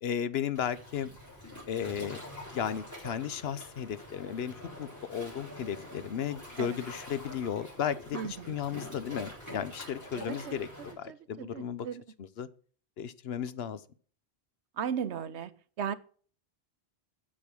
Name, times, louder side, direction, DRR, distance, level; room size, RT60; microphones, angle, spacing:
voice 1, 0.0-1.1 1.7-2.2 2.5-10.7 11.0-11.9 12.2-12.5 13.0-13.8, left 8 dB, 70° left, 15 dB, 0.9 m, -34 dB
Waves surf, 0.5-10.9, left 1 dB, 15° left, 4.2 m, -46 dB
voice 2, 8.1-8.8 10.1-10.7 11.1-12.0 14.8-15.5 15.8-15.9, right 8 dB, 85° right, 14 dB, 1.1 m, -36 dB
8.7 x 6.8 x 6.1 m, 0.43 s
omnidirectional pair, 1.1 m